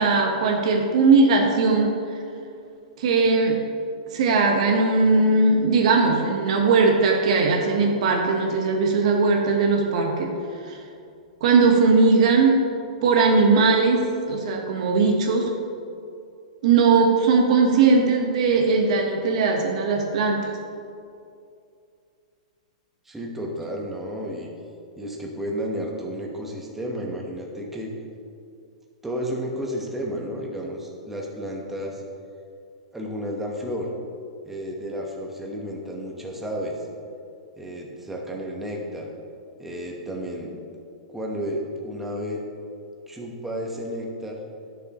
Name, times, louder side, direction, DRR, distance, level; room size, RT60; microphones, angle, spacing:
voice 1, 0.0-2.0 3.0-3.6 4.1-10.3 10.6-10.8 11.4-15.5 16.6-20.5, right 4 dB, 60° right, 1 dB, 1.1 m, -19 dB
voice 2, 23.0-24.5 25.0-27.9 29.0-32.0 32.9-33.9 34.4-36.8 37.6-39.1 39.6-40.6 41.1-42.4 43.1-44.4, equal, 5° right, -1 dB, 1.1 m, -32 dB
11.5 x 6.7 x 3.0 m, 2.5 s
hypercardioid pair, 140°, 4 cm